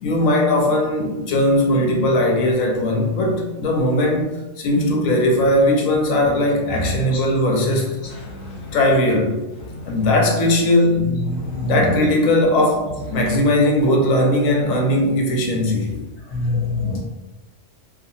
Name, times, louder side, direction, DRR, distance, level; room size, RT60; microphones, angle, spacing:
voice 1, 0.0-8.0 8.7-9.4 9.8-11.2 11.6-16.0, left 1 dB, 90° left, 1.0 m, -19 dB
voice 2, 6.7-7.2 8.3-8.7 11.3-11.8 16.3-17.0, left 2 dB, 35° left, 0.6 m, -25 dB
2.6 x 2.2 x 2.6 m
omnidirectional pair, 1.4 m